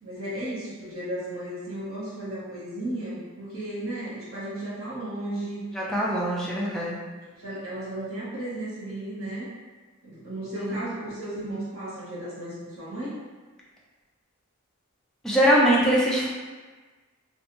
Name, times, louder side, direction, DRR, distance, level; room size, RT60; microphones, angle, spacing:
voice 1, 0.0-5.6 7.2-9.5 10.0-13.2, right 1 dB, 75° right, -8 dB, 1.1 m, -34 dB
voice 2, 5.7-7.0 10.6-10.8 15.2-16.3, equal, ahead, -6 dB, 0.4 m, -22 dB
2.5 x 2.2 x 3.0 m, 1.4 s
head